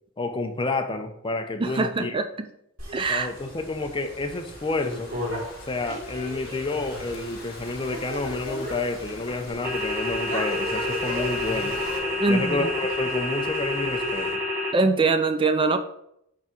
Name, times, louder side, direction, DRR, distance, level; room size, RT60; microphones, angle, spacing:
voice 1, 0.2-2.2 3.1-5.1 5.7-11.8 12.3-14.4, left 3 dB, 25° left, 6 dB, 0.6 m, -29 dB
voice 2, 1.6-2.5 2.9-3.3 12.2-12.7 14.7-15.8, right 3 dB, 25° right, 8 dB, 0.4 m, -23 dB
sound 1, 2.8-14.3, equal, 90° right, 2.9 m, -38 dB
Thunderstorm / Rain, 2.9-12.0, left 2 dB, 50° left, 2.3 m, -44 dB
sound 2, 9.6-14.7, left 1 dB, 10° right, 1.6 m, -28 dB
8.6 x 3.7 x 4.4 m, 0.77 s
head